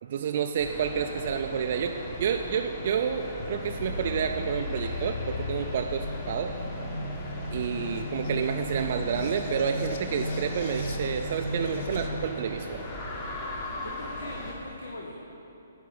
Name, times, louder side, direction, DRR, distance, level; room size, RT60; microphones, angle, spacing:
voice 1, 0.0-6.6 7.5-12.8, right 7 dB, 50° right, 4 dB, 0.4 m, -29 dB
sound 1, 0.6-14.5, left 1 dB, 35° left, 1.7 m, -39 dB
sound 2, 3.4-12.1, left 1 dB, 50° left, 0.9 m, -35 dB
voice 2, 13.8-15.1, left 1 dB, 70° left, 0 dB, 1.0 m, -41 dB
10.0 x 5.1 x 7.4 m, 2.9 s
figure-of-eight pair, 130°, 0 cm